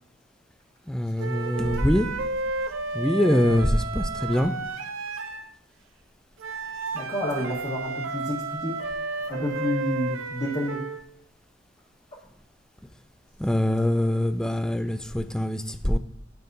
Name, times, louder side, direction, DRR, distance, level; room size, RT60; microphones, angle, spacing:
voice 1, 0.9-2.1 2.9-4.5 13.4-16.0, left 1 dB, 5° left, 10 dB, 0.3 m, -23 dB
sound 1, 1.2-5.5 6.4-11.0, right 3 dB, 85° right, 0.6 m, -32 dB
voice 2, 6.9-10.8, equal, 35° left, -8 dB, 1.3 m, -30 dB
9.7 x 5.4 x 2.6 m, 0.72 s
head